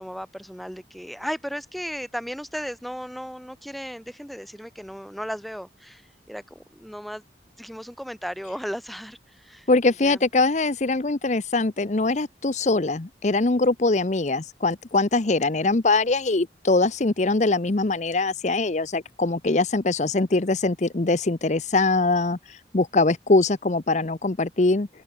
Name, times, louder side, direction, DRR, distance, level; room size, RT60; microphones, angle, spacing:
voice 1, 0.0-7.2 7.6-9.7 10.0-10.2, equal, ahead, 5.3 m, -35 dB
voice 2, 9.7-24.9, left 3 dB, 40° left, 0.7 m, -22 dB
open air
head